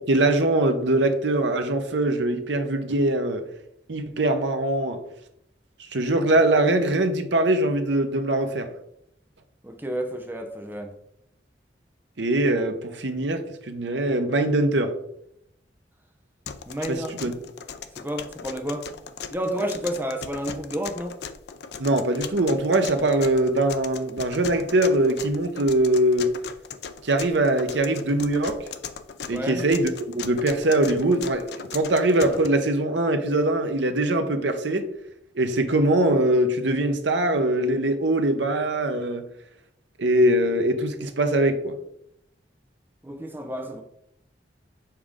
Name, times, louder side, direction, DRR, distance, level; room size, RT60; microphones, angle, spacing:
voice 1, 0.1-3.4 3.9-5.0 5.8-8.7 12.2-14.9 16.9-17.3 21.8-26.3 27.0-28.6 29.3-34.9 35.3-39.2 40.0-41.8, right 1 dB, 80° right, 7 dB, 0.9 m, -22 dB
voice 2, 9.6-10.9 16.7-17.3 18.0-18.8 19.3-21.1 29.3-29.6 43.0-43.8, equal, 10° right, 4 dB, 0.7 m, -30 dB
sound 1, 16.5-32.5, left 6 dB, 65° left, 0.5 m, -38 dB
7.2 x 5.0 x 3.6 m, 0.76 s
head